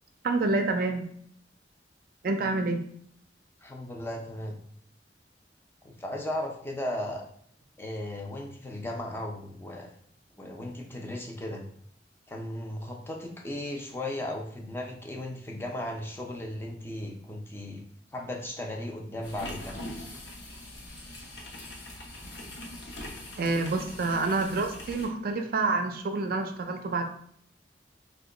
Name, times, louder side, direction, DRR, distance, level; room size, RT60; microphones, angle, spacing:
voice 1, 0.2-1.1 2.2-2.8 23.4-27.0, right 3 dB, 55° right, 6 dB, 0.4 m, -28 dB
voice 2, 3.6-4.6 5.8-7.2 7.8-9.9 10.4-11.7 12.3-17.8 18.1-19.7, left 1 dB, 15° left, 0 dB, 0.4 m, -36 dB
sound 1, 19.2-25.1, left 1 dB, 70° left, 0.8 m, -42 dB
2.9 x 2.2 x 3.7 m, 0.64 s
head